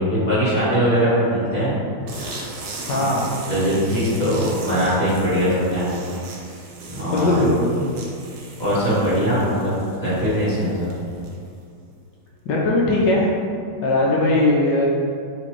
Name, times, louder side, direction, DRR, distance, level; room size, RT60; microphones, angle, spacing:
voice 1, 0.0-1.7 2.1-2.4 2.8-3.0 3.4-6.0 6.9-7.3 8.6-10.9, equal, 25° left, -11 dB, 1.0 m, -21 dB
sound 1, 2.1-11.6, right 2 dB, 65° right, 1.0 m, -38 dB
voice 2, 2.9-3.3 7.1-7.8 12.4-13.3 13.8-14.8, left 2 dB, 70° left, -3 dB, 1.2 m, -19 dB
4.2 x 3.2 x 3.0 m, 2.3 s
omnidirectional pair, 2.2 m